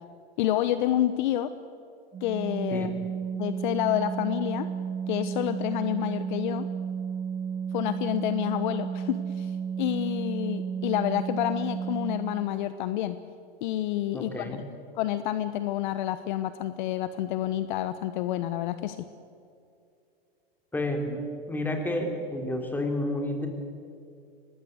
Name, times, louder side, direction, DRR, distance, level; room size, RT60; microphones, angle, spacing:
voice 1, 0.4-1.5 2.2-3.0 3.3-4.7 5.1-6.7 7.7-13.2 13.6-19.1, left 12 dB, 50° left, 12 dB, 1.0 m, -29 dB
Organ, 2.1-12.7, right 7 dB, 15° right, 1.1 m, -33 dB
voice 2, 14.1-14.6 20.7-21.2 21.5-23.5, left 1 dB, 5° left, 3 dB, 3.3 m, -30 dB
23.5 x 19.5 x 8.2 m, 2.4 s
hypercardioid pair, 125°, 32 cm